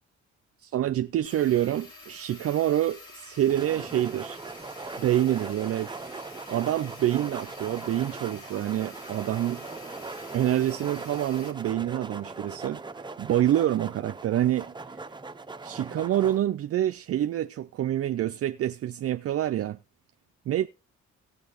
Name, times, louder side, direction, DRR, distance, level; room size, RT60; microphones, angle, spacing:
voice 1, 0.6-4.4 5.0-5.9 6.5-9.6 10.3-15.0 15.6-19.8 20.5-20.7, right 12 dB, 50° right, 0.5 m, -27 dB
sound 1, 1.2-11.5, left 3 dB, 65° left, 3.3 m, -48 dB
sound 2, 3.5-16.4, right 3 dB, 15° right, 0.7 m, -40 dB
17.5 x 6.9 x 4.0 m
cardioid pair, 90°, 30 cm